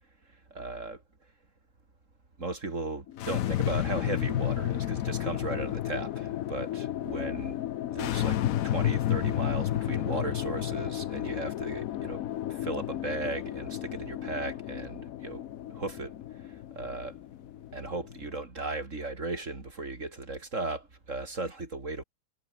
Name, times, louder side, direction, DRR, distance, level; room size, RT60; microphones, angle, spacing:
voice 1, 0.5-1.0 2.4-7.6 7.9-12.2 12.5-17.2 17.7-22.0, right 2 dB, 35° right, 3.7 m, -36 dB
sound 1, 3.1-18.4, left 12 dB, 75° left, 0.7 m, -32 dB
omnidirectional pair, 2.2 m